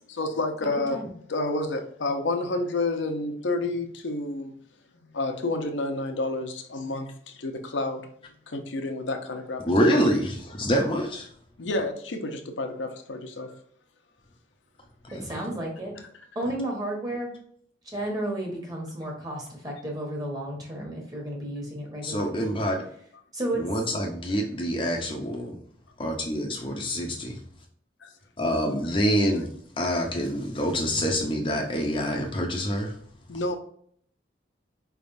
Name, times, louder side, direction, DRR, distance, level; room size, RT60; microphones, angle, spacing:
voice 1, 0.1-1.0 1.3-4.5 5.1-8.1 8.5-9.6 9.9-10.0 11.6-13.5 16.0-16.1 28.0-28.1 33.3-33.6, left 2 dB, 80° left, 5 dB, 0.7 m, -29 dB
voice 2, 9.7-11.3 15.1-15.2 22.0-22.8 23.5-25.6 26.0-27.4 28.4-29.5 29.8-33.0, equal, 25° left, 1 dB, 0.6 m, -26 dB
voice 3, 15.1-15.9 16.3-17.3 17.8-22.5 23.3-23.7, right 1 dB, 20° right, -1 dB, 1.3 m, -32 dB
4.9 x 3.4 x 2.6 m, 0.62 s
head